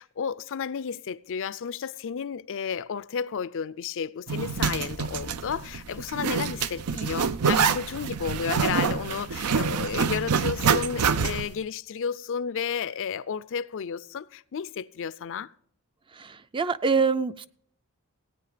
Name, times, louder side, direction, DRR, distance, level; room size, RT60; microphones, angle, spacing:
voice 1, 0.0-15.5, left 7 dB, 60° left, 0.4 m, -32 dB
Zipper (clothing), 4.3-11.5, right 6 dB, 90° right, 0.6 m, -26 dB
voice 2, 16.2-17.5, right 5 dB, 20° right, 0.4 m, -25 dB
17.0 x 9.2 x 5.0 m
head